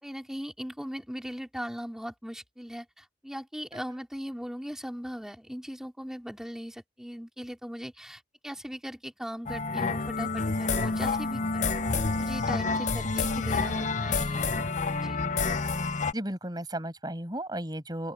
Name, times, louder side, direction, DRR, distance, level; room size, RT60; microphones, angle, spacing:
voice 1, 0.0-11.7 12.2-14.5 14.9-15.2, equal, 5° right, 4.3 m, -39 dB
sound 1, 9.5-16.1, left 3 dB, 45° left, 0.7 m, -28 dB
voice 2, 16.1-18.1, right 1 dB, 20° right, 7.7 m, -34 dB
open air
head